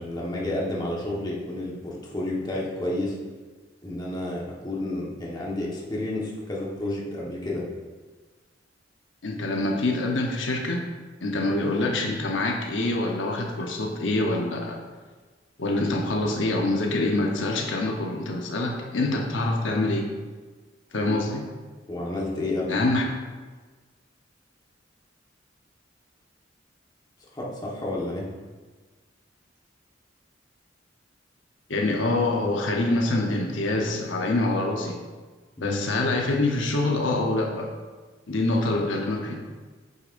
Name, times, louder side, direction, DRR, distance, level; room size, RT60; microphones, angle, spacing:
voice 1, 0.0-3.2 3.8-7.6 21.0-21.1 21.9-22.8 27.3-28.3 35.6-35.8, left 1 dB, 20° left, -4 dB, 1.3 m, -30 dB
voice 2, 9.2-10.8 11.2-14.8 15.6-20.1 20.9-21.5 22.7-23.0 31.7-35.0 35.6-37.7 38.3-39.4, left 2 dB, 85° left, 1 dB, 0.9 m, -25 dB
8.3 x 6.7 x 2.6 m, 1.4 s
head